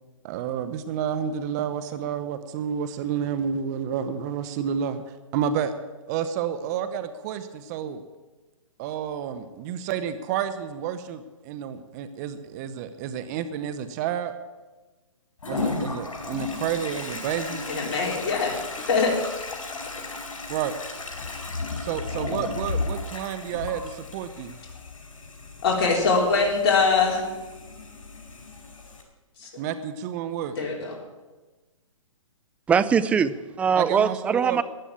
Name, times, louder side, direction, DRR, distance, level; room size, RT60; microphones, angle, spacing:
voice 1, 0.2-5.0 5.3-5.7 6.1-8.0 8.8-14.3 15.5-17.6 20.5-20.7 21.8-24.6 29.6-30.6 33.8-34.6, right 8 dB, 30° right, 11 dB, 0.9 m, -30 dB
Toilet flush, 15.4-29.0, left 3 dB, 75° left, 4.8 m, -34 dB
voice 2, 17.7-18.6 18.9-19.2 25.6-27.2 29.4-29.5 30.6-31.0, left 4 dB, 45° left, -1 dB, 4.1 m, -22 dB
voice 3, 32.7-34.6, right 6 dB, 5° right, 14 dB, 0.4 m, -22 dB
13.0 x 10.0 x 8.7 m, 1.2 s
figure-of-eight pair, 130°, 17 cm